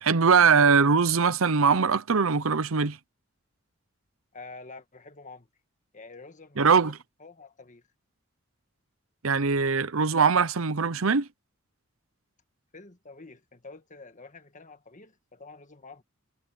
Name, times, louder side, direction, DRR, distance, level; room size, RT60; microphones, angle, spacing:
voice 1, 0.0-3.0 6.6-7.0 9.2-11.3, right 5 dB, 75° right, 0.8 m, -21 dB
voice 2, 4.3-5.5 5.9-6.9 7.2-7.8 12.7-16.0, left 3 dB, 35° left, 1.7 m, -47 dB
head